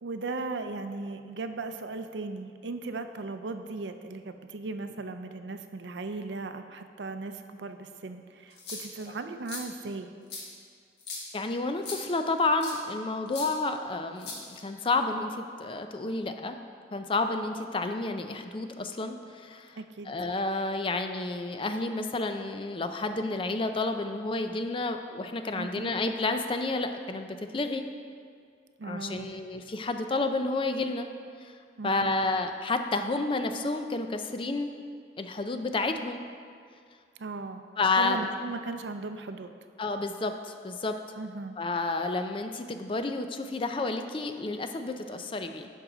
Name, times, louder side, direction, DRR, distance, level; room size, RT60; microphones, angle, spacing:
voice 1, 0.0-10.1 19.8-20.2 25.6-25.9 28.8-29.4 31.8-32.2 37.2-37.6 38.0-39.5 41.2-41.6, right 3 dB, 85° right, 8 dB, 0.5 m, -37 dB
sound 1, 8.5-9.0 9.5-9.6 10.3-10.4 11.0-11.2 11.8-12.0 12.6-12.8 13.3-13.5 14.2-14.8, left 4 dB, 70° left, 1.6 m, -39 dB
voice 2, 11.3-16.6 16.9-19.8 20.1-27.8 28.8-31.1 31.4-31.5 31.8-34.7 35.2-36.2 37.8-38.2 39.8-40.9 41.6-45.7, left 3 dB, 30° left, 7 dB, 0.4 m, -30 dB
10.5 x 6.4 x 3.9 m, 2.2 s
head